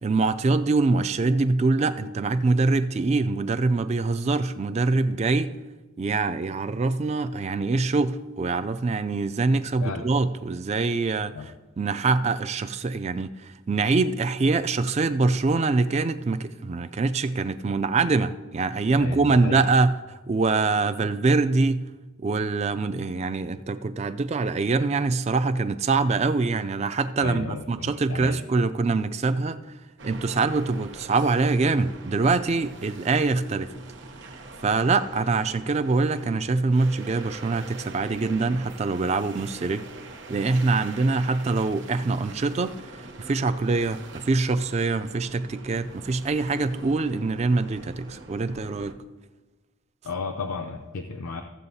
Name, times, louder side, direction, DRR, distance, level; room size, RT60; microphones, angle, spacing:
voice 1, 0.0-5.6 6.0-20.0 20.3-21.9 22.2-29.7 30.0-33.8 34.6-39.9 40.3-49.0, right 3 dB, 30° right, 0.3 m, -24 dB
voice 2, 19.0-19.6 27.2-28.3 50.0-51.4, left 4 dB, 85° left, 0.6 m, -33 dB
sound 1, 30.0-48.9, right 2 dB, 55° right, 0.9 m, -44 dB
15.0 x 7.7 x 2.7 m
head